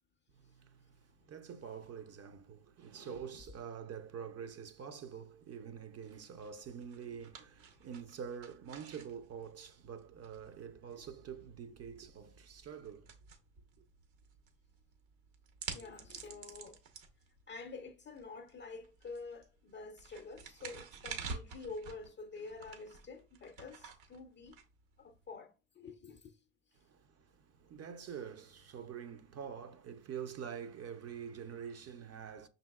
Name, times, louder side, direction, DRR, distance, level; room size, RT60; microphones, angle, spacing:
voice 1, 0.3-13.1 26.8-32.5, right 7 dB, 35° right, 0.5 m, -46 dB
sound 1, 6.0-25.3, right 5 dB, 70° right, 1.2 m, -51 dB
voice 2, 15.7-16.8 17.5-24.6 25.0-26.4 26.7-26.8, left 4 dB, 25° left, 0.4 m, -48 dB
5.7 x 3.9 x 2.3 m
supercardioid pair, 90°, 46 cm